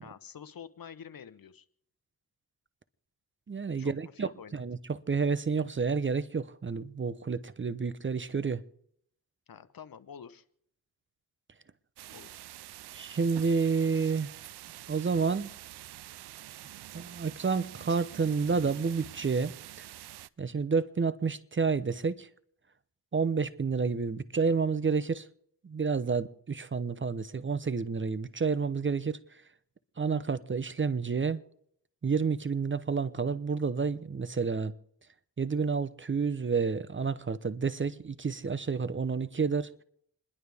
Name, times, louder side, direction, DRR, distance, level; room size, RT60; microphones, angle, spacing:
voice 1, 0.0-1.7 3.8-4.6 9.5-10.4 12.1-12.4, left 7 dB, 60° left, 1.0 m, -48 dB
voice 2, 3.5-8.6 12.9-14.3 14.9-15.5 16.9-19.9 20.4-22.3 23.1-25.3 25.6-29.2 30.0-31.4 32.0-34.7 35.4-39.7, right 5 dB, 30° right, 0.7 m, -30 dB
sound 1, 12.0-20.3, right 14 dB, 85° right, 0.5 m, -47 dB
28.5 x 11.0 x 3.5 m
cardioid pair, 60°, 39 cm